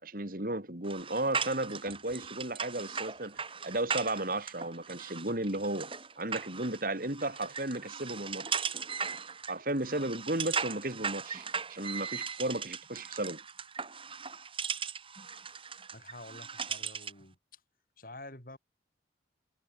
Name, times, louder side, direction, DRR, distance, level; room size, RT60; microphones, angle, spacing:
voice 1, 0.0-5.9 6.2-8.6 9.5-13.4, right 1 dB, 50° right, 3.4 m, -34 dB
sound 1, 0.8-17.2, right 6 dB, 30° right, 4.4 m, -38 dB
voice 2, 15.9-17.6 18.0-18.6, left 2 dB, 50° left, 7.5 m, -49 dB
head